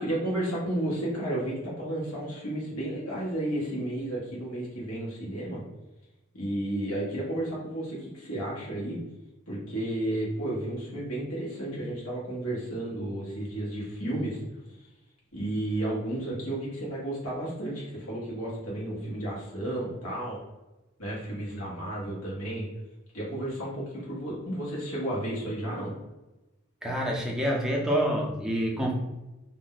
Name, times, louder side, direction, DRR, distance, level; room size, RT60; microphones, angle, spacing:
voice 1, 0.0-5.6 6.3-9.0 9.5-14.4 14.8-14.9 15.3-20.4 21.0-22.7 23.1-25.9, right 1 dB, 75° left, -5 dB, 1.1 m, -32 dB
voice 2, 26.8-28.9, equal, 5° right, -1 dB, 0.5 m, -27 dB
2.5 x 2.1 x 3.8 m, 1.0 s
head